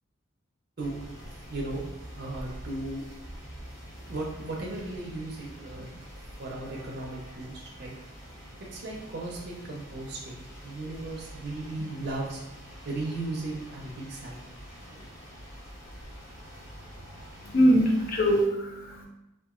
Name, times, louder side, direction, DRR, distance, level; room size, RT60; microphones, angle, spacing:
sound 1, 0.8-18.5, equal, 20° left, 1.5 m, -46 dB
voice 1, 1.3-1.8 2.2-3.0 4.1-5.9 6.4-7.9 8.7-12.4 12.8-15.0, right 2 dB, 50° right, -2 dB, 0.4 m, -36 dB
Piano, 6.7-13.7 14.0-14.2, left 1 dB, 60° left, 1.3 m, -55 dB
voice 2, 17.4-19.1, equal, 45° left, 0 dB, 0.4 m, -22 dB
2.8 x 2.3 x 2.4 m, 0.93 s
head